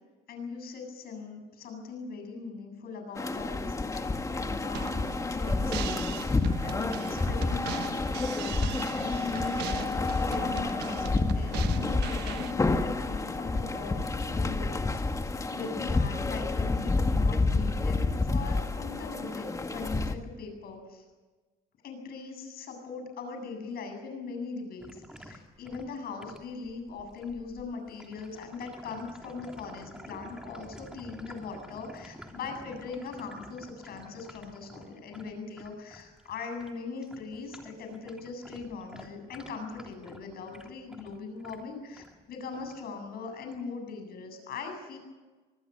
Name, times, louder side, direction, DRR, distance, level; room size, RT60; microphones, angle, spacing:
voice 1, 0.3-5.0 5.3-5.8 6.6-21.0 21.8-45.0, left 4 dB, 65° left, 5 dB, 7.8 m, -40 dB
sound 1, 3.1-20.1, left 3 dB, 20° left, 1.9 m, -29 dB
sound 2, 4.7-12.5, right 13 dB, 85° right, 1.1 m, -41 dB
sound 3, 24.8-36.7 37.0-42.2 42.5-42.8 43.5-43.6, equal, 5° right, 3.2 m, -50 dB
25.0 x 19.5 x 7.0 m, 1.3 s
cardioid pair, 110°, 17 cm